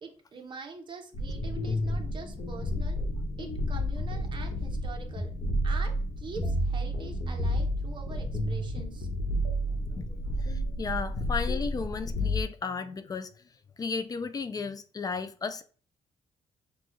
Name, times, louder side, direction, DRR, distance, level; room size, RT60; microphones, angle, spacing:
voice 1, 0.0-3.0 3.4-5.3 5.6-9.1, right 4 dB, 40° right, 0.9 m, -44 dB
sound 1, 1.1-12.4, equal, 60° left, 1.1 m, -31 dB
voice 2, 10.4-13.3 13.8-15.6, left 4 dB, 30° left, 0.3 m, -34 dB
5.9 x 2.3 x 3.1 m
cardioid pair, 135°, 13 cm